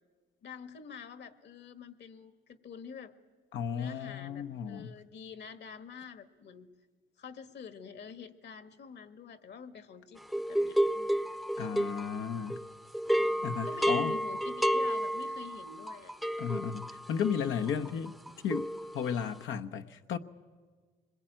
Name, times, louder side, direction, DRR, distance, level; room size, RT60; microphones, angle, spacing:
voice 1, 0.4-3.1 3.7-6.7 7.2-11.9 13.2-16.1 17.5-17.9, left 6 dB, 60° left, 1.6 m, -47 dB
voice 2, 3.5-5.0 11.6-12.6 13.4-14.1 16.4-18.1 18.4-18.7 18.9-20.2, left 7 dB, 80° left, 0.9 m, -34 dB
sound 1, 10.3-12.7 12.9-19.3, equal, ahead, 0.7 m, -31 dB
25.0 x 21.5 x 9.0 m
cardioid pair, 90°, 20 cm